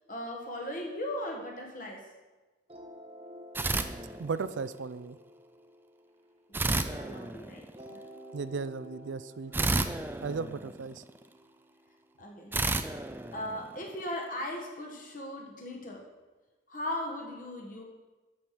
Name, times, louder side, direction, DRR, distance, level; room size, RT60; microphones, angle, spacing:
voice 1, 0.1-2.1 6.5-8.0 12.2-12.5 13.3-16.1 16.7-17.8, left 1 dB, 45° left, 1 dB, 1.8 m, -38 dB
sound 1, 2.7-7.1 7.7-12.7, equal, 30° right, 1.3 m, -51 dB
sound 2, 3.5-4.7 6.5-7.9 9.5-11.2 12.5-14.1, right 2 dB, 10° right, 0.4 m, -32 dB
voice 2, 4.2-5.2 8.3-9.5 10.2-11.0, right 4 dB, 70° right, 14 dB, 0.4 m, -35 dB
13.0 x 5.0 x 6.0 m, 1.2 s
head